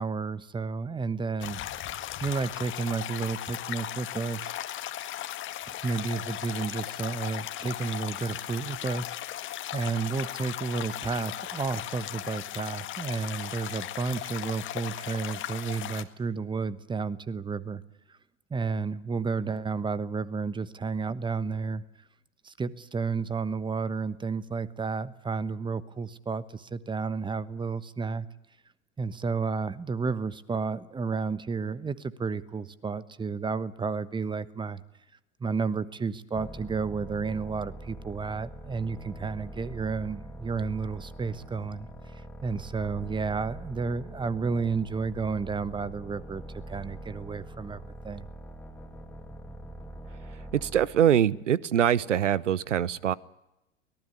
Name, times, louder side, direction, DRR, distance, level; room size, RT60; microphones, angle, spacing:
voice 1, 0.0-1.6 2.2-4.5 5.7-17.8 18.5-21.8 22.4-28.3 29.0-34.8 35.4-48.3, right 4 dB, 15° right, 15 dB, 1.1 m, -32 dB
sound 1, 1.4-16.0, left 12 dB, 35° left, 1.7 m, -37 dB
sound 2, 36.3-51.1, right 1 dB, 5° left, 2.3 m, -43 dB
voice 2, 50.3-53.1, right 10 dB, 80° right, 21 dB, 0.9 m, -24 dB
24.0 x 18.5 x 9.9 m, 0.93 s
hypercardioid pair, 95°, 36 cm